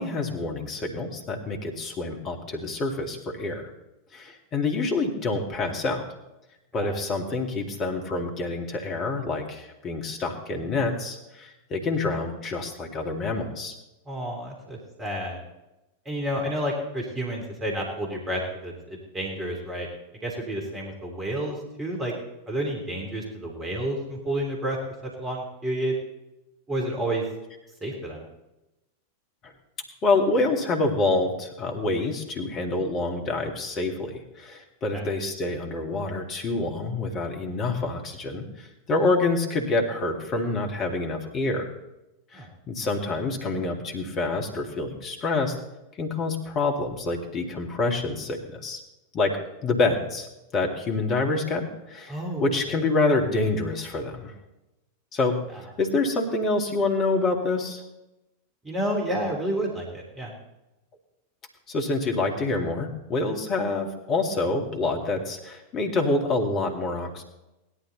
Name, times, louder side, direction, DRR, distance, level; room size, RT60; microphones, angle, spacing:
voice 1, 0.0-3.7 4.1-6.0 6.7-13.8 29.4-29.5 30.0-41.7 42.3-45.6 46.0-48.8 49.1-49.4 49.6-50.3 50.5-54.3 55.1-57.8 61.7-67.2, left 3 dB, 30° left, 2 dB, 2.4 m, -27 dB
voice 2, 14.1-15.4 16.0-19.9 20.2-22.1 22.5-24.8 25.0-26.0 26.7-27.2 27.8-28.2 34.9-35.0 42.3-42.5 52.1-52.5 58.6-60.3, right 1 dB, 20° right, 0 dB, 3.3 m, -30 dB
17.0 x 11.5 x 4.1 m, 0.95 s
figure-of-eight pair, 90°, 0 cm